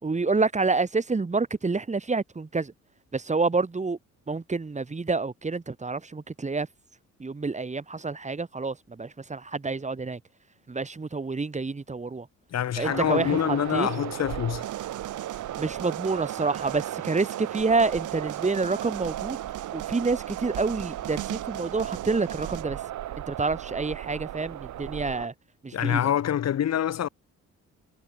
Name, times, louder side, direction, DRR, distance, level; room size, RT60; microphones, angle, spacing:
voice 1, 0.0-2.7 3.1-4.0 4.3-6.7 7.2-10.2 10.7-12.3 12.8-13.9 15.6-19.4 19.7-22.8 23.3-25.3 25.6-26.0, right 3 dB, 25° right, 3.2 m, -28 dB
voice 2, 12.5-14.7 25.7-27.1, left 10 dB, 60° left, 1.8 m, -26 dB
sound 1, 12.8-25.3, right 12 dB, 70° right, 1.4 m, -35 dB
sound 2, 14.6-22.6, right 15 dB, 85° right, 4.4 m, -42 dB
cardioid pair, 90°, 30 cm